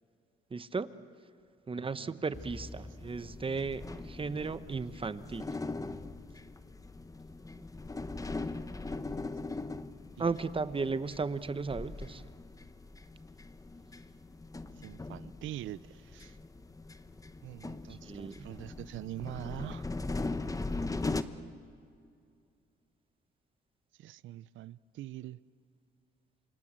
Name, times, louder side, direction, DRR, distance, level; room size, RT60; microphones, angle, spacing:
voice 1, 0.5-0.9 1.7-5.5 10.2-12.2 18.0-18.5, right 4 dB, 25° right, 13 dB, 1.0 m, -35 dB
voice 2, 1.7-2.2 10.2-10.4 14.8-16.4 17.4-19.9 23.9-25.4, right 14 dB, 75° right, 19 dB, 0.6 m, -44 dB
sound 1, 2.3-21.2, left 3 dB, 15° left, 1.0 m, -40 dB
28.0 x 26.0 x 7.6 m, 2.4 s
cardioid pair, 90°, 20 cm